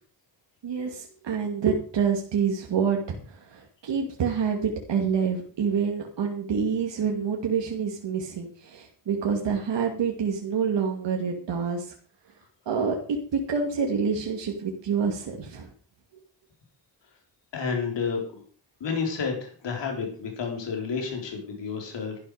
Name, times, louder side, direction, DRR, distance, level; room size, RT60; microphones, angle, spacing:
voice 1, 0.6-11.9 12.7-13.0 13.3-15.7, right 6 dB, 85° right, 1 dB, 2.5 m, -27 dB
voice 2, 17.5-18.4 18.8-22.2, left 5 dB, 90° left, 1 dB, 4.3 m, -30 dB
13.0 x 12.0 x 5.0 m, 0.43 s
cardioid pair, 80°, 42 cm